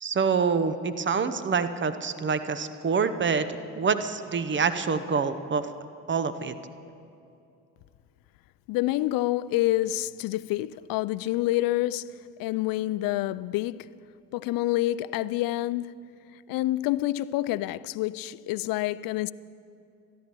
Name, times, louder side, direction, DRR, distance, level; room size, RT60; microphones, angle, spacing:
voice 1, 0.0-3.5 3.7-5.7 6.1-6.5, right 5 dB, 25° right, 0.8 m, -26 dB
voice 2, 8.7-12.1 12.4-13.9 14.3-16.0 16.5-19.3, left 16 dB, 50° left, 0.4 m, -27 dB
26.5 x 11.5 x 3.0 m
hypercardioid pair, 55°, 46 cm